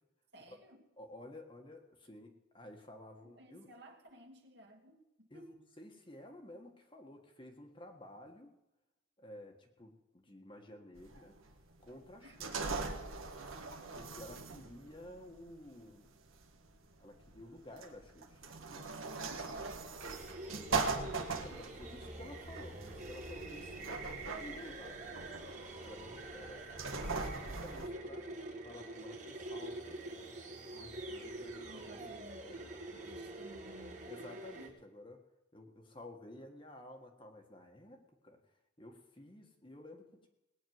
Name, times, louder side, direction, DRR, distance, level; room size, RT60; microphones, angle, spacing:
voice 1, 0.3-0.8 3.2-5.6 12.2-12.4 18.9-21.1 21.3-21.6 31.6-32.6 32.9-34.7, right 1 dB, 55° right, 2 dB, 2.3 m, -56 dB
voice 2, 1.0-3.7 5.3-8.6 9.2-11.4 11.8-12.9 13.9-16.1 17.0-19.0 20.9-25.4 25.8-28.3 28.6-30.2 30.7-32.1 32.4-32.6 34.1-35.2 35.5-38.4 38.8-40.3, left 1 dB, 25° left, 3 dB, 1.6 m, -53 dB
sound 1, 11.0-27.9, right 4 dB, 85° right, 1.8 m, -41 dB
sound 2, 20.0-34.7, right 2 dB, 35° right, 2.3 m, -46 dB
19.0 x 6.4 x 9.5 m, 0.98 s
head